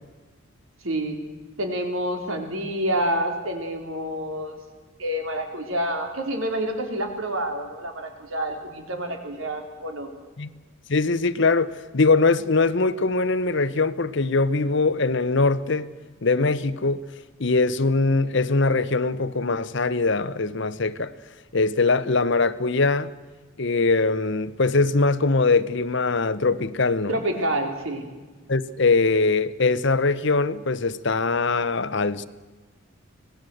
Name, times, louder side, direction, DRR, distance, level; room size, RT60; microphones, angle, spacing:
voice 1, 0.8-1.2 1.6-4.5 5.0-10.1 27.1-28.1, right 1 dB, 70° right, 3.8 m, -28 dB
voice 2, 10.9-15.9 16.2-17.0 17.4-21.1 21.5-23.1 23.6-27.2 28.5-32.3, left 3 dB, 55° left, 0.9 m, -22 dB
25.5 x 18.5 x 7.9 m
head